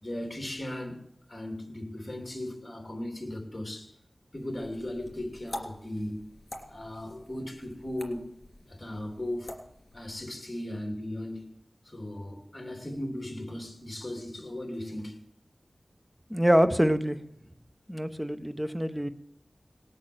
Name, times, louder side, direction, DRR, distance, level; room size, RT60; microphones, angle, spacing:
voice 1, 0.0-1.0 1.3-3.9 4.3-6.3 6.7-8.3 8.7-9.5 9.9-11.5 11.8-15.2, left 1 dB, 25° left, 3.0 m, -37 dB
sound 1, 4.3-10.2, left 1 dB, 50° left, 3.2 m, -46 dB
voice 2, 16.3-17.2 17.9-19.1, equal, 5° right, 1.0 m, -25 dB
19.0 x 8.5 x 7.9 m
wide cardioid pair, 75°, 0 cm